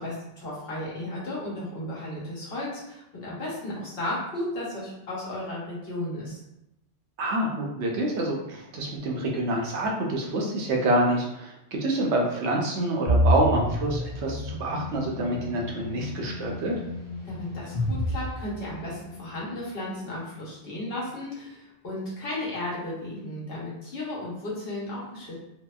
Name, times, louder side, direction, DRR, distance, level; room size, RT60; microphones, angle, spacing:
voice 1, 0.0-6.4 17.2-25.4, left 1 dB, 60° left, -6 dB, 1.0 m, -34 dB
voice 2, 7.2-16.7, right 1 dB, 75° right, -1 dB, 0.8 m, -27 dB
sound 1, 13.1-19.0, equal, 35° left, 1.0 m, -29 dB
2.7 x 2.1 x 2.2 m, 0.87 s
omnidirectional pair, 1.2 m